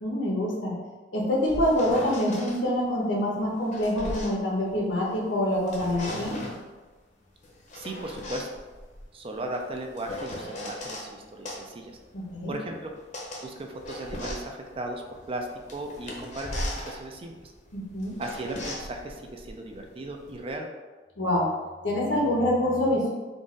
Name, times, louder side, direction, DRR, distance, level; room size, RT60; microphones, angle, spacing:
voice 1, 0.0-0.8 1.1-6.4 12.3-12.5 17.7-18.1 21.2-21.6 21.8-23.1, left 1 dB, 80° left, -3 dB, 1.1 m, -26 dB
sound 1, 1.2-2.6 3.4-5.2 5.5-6.7 7.4-11.1 11.4-20.5, left 1 dB, 40° left, 0.8 m, -38 dB
voice 2, 7.7-8.5 9.1-12.0 12.5-12.9 13.4-17.5 18.2-20.7, right 1 dB, 30° right, 2 dB, 0.4 m, -36 dB
3.9 x 2.4 x 3.7 m, 1.3 s
head